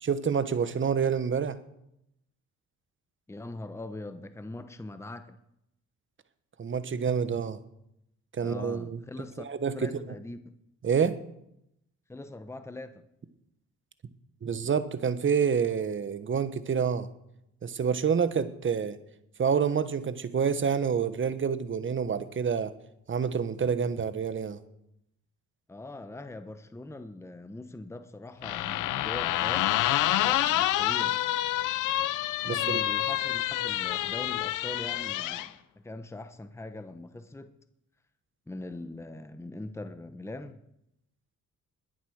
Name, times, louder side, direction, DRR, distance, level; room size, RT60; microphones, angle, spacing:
voice 1, 0.0-1.6 6.6-7.6 8.3-9.0 9.4-9.9 10.8-11.2 14.4-17.1 17.6-19.0 19.4-22.7 23.1-24.6 32.4-32.8, right 6 dB, 40° right, 1.3 m, -28 dB
voice 2, 3.3-5.4 8.4-9.4 9.7-10.4 12.1-13.0 25.7-29.7 30.2-31.2 32.4-37.5 38.5-40.6, left 2 dB, 10° left, 1.0 m, -41 dB
sound 1, 28.4-35.5, left 14 dB, 90° left, 0.7 m, -28 dB
21.0 x 8.2 x 6.5 m
cardioid pair, 90°, 30 cm